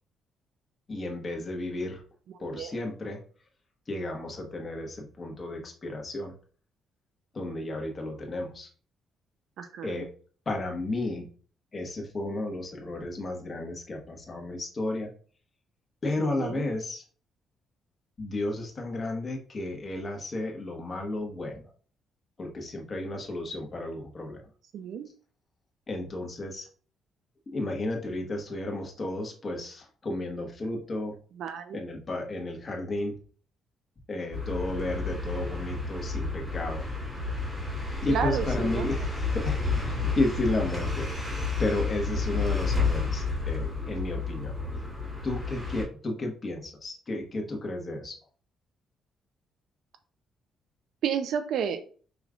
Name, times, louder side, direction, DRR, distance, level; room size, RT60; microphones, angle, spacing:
voice 1, 0.9-2.0 2.4-3.2 3.9-6.3 7.3-8.7 9.8-10.1 10.4-11.3 11.7-15.1 16.0-17.0 18.2-21.7 22.4-24.4 25.9-26.7 27.5-31.2 31.7-33.2 34.1-36.9 38.0-41.3 41.6-44.5 45.2-48.1, left 2 dB, 35° left, 1 dB, 1.2 m, -33 dB
voice 2, 9.6-10.0 16.2-16.7 24.7-25.1 31.4-31.8 38.1-38.8 51.0-51.8, right 7 dB, 75° right, 9 dB, 0.4 m, -31 dB
sound 1, 34.3-45.8, left 4 dB, 5° right, 1.8 m, -31 dB
4.8 x 3.1 x 2.4 m, 0.42 s
cardioid pair, 90°, 0 cm